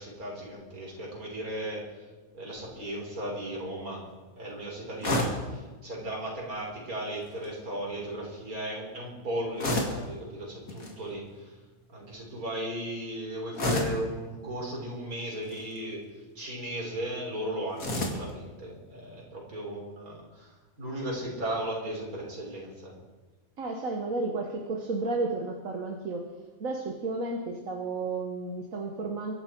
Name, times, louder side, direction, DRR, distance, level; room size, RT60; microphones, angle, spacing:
voice 1, 0.0-2.0 2.3-4.0 4.3-11.6 11.9-16.0 16.3-22.9, right 1 dB, 85° right, -2 dB, 4.7 m, -36 dB
sound 1, 5.0-5.5 7.2-7.5 9.6-10.1 10.7-10.9 13.5-14.1 15.4-15.8 17.8-18.3, left 1 dB, 75° left, 2.6 m, -29 dB
voice 2, 23.6-26.2 26.6-29.3, right 3 dB, 70° right, 2 dB, 1.7 m, -32 dB
24.0 x 11.0 x 4.6 m, 1.2 s
omnidirectional pair, 1.5 m